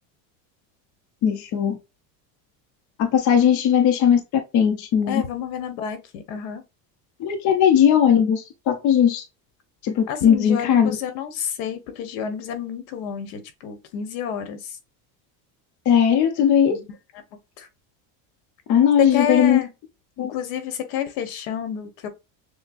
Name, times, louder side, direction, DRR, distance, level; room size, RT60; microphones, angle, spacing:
voice 1, 1.2-1.8 3.0-4.2 4.5-5.2 7.2-9.2 9.8-11.0 15.9-16.8 18.7-19.6 20.2-20.3, left 8 dB, 40° left, 0.8 m, -18 dB
voice 2, 5.1-6.6 10.1-14.7 16.7-16.9 17.6-17.7 19.0-19.7 20.2-22.1, left 8 dB, 80° left, 1.3 m, -29 dB
6.5 x 2.2 x 2.4 m
cardioid pair, 155°, 44 cm